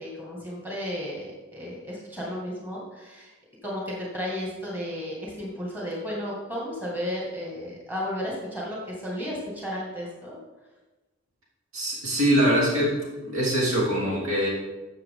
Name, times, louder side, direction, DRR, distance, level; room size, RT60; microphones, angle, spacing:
voice 1, 0.0-3.3 3.6-10.4, equal, 10° right, -5 dB, 2.2 m, -33 dB
voice 2, 11.7-13.0 13.2-14.5, equal, 90° right, -5 dB, 3.5 m, -23 dB
13.5 x 6.7 x 3.8 m, 1.1 s
head